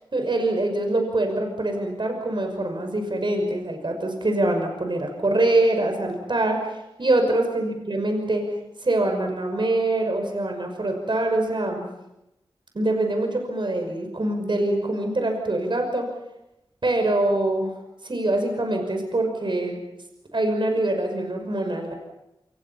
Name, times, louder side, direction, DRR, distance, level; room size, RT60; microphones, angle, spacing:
voice 1, 0.1-6.6 7.0-8.4 8.8-11.8 12.7-16.1 16.8-17.7 18.0-19.8 20.3-21.9, right 2 dB, 55° right, 4 dB, 5.8 m, -24 dB
28.0 x 27.0 x 5.7 m, 0.89 s
wide cardioid pair, 65°, 10 cm